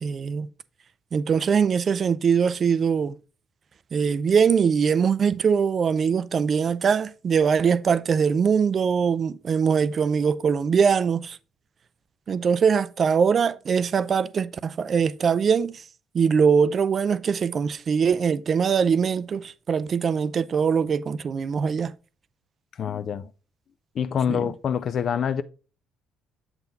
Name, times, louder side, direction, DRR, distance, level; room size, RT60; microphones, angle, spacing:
voice 1, 0.0-0.5 1.1-3.1 3.9-11.4 12.3-15.8 16.1-21.9 24.3-24.5, right 6 dB, 45° right, 0.3 m, -22 dB
voice 2, 22.8-23.3 24.0-25.4, left 8 dB, 50° left, 0.4 m, -26 dB
7.9 x 3.7 x 3.9 m
figure-of-eight pair, 45°, 0 cm